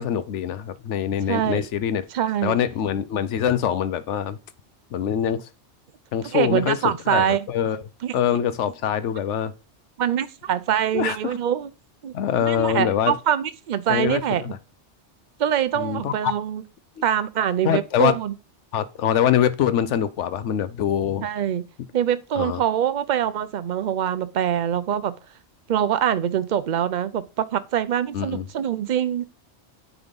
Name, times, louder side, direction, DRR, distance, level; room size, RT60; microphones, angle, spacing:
voice 1, 0.0-2.0 2.4-4.4 4.9-5.5 6.1-7.8 8.1-9.5 10.9-11.4 12.1-13.2 13.9-14.6 15.7-16.3 17.0-17.1 17.6-18.2 18.7-21.3 22.4-22.6 28.1-28.5, left 9 dB, 80° left, 1.0 m, -24 dB
voice 2, 1.3-1.7 2.1-2.6 6.3-7.4 8.0-8.1 10.0-11.7 12.0-14.5 15.4-16.6 17.0-18.3 21.2-21.6 21.9-25.1 25.7-29.2, right 9 dB, 50° right, 0.6 m, -24 dB
9.3 x 3.6 x 5.2 m
omnidirectional pair, 1.2 m